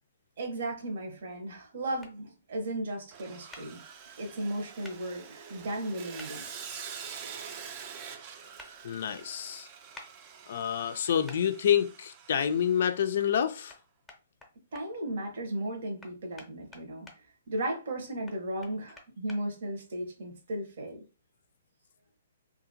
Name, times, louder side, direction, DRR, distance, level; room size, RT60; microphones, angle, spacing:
voice 1, 0.4-3.8 4.2-6.4 7.2-7.4 14.7-17.1 17.5-21.0, right 1 dB, 65° right, 0.9 m, -35 dB
sound 1, 2.0-2.1 3.5-3.6 4.8-5.0 6.2-6.3 8.6-8.7 9.9-10.1 11.3-11.4 13.7-13.8 14.1-14.9 16.0-17.2 18.3-19.4, left 2 dB, 5° left, 0.7 m, -48 dB
Sawing, 3.1-13.4, right 7 dB, 35° right, 0.4 m, -46 dB
voice 2, 8.8-9.7 10.5-13.7, left 9 dB, 60° left, 0.3 m, -28 dB
2.8 x 2.5 x 2.6 m
hypercardioid pair, 140°, 0 cm